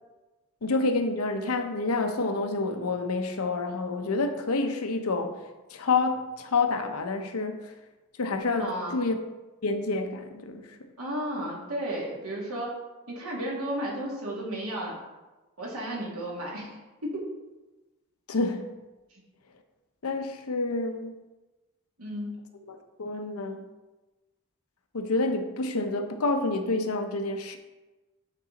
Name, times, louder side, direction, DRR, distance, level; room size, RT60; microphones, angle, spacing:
voice 1, 0.6-7.7 8.2-9.2 9.6-10.8 18.3-18.7 20.0-21.1 22.7-23.6 24.9-27.6, left 3 dB, 85° left, 0.8 m, -28 dB
voice 2, 8.6-8.9 11.0-12.8 13.1-15.0 15.6-16.7 17.0-17.3 19.1-19.2 22.0-22.3, right 1 dB, 85° right, 2.3 m, -33 dB
9.0 x 4.0 x 4.1 m
head